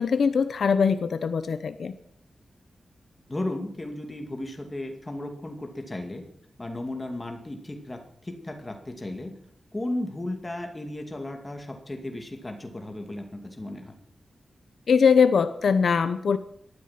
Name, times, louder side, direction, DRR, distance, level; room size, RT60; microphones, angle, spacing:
voice 1, 0.0-2.0 14.9-16.4, left 6 dB, 65° left, 11 dB, 0.8 m, -22 dB
voice 2, 3.3-6.2 6.6-9.3 9.7-13.9, left 1 dB, 15° left, 4 dB, 2.3 m, -35 dB
18.5 x 13.0 x 5.9 m, 0.67 s
wide cardioid pair, 165°, 0 cm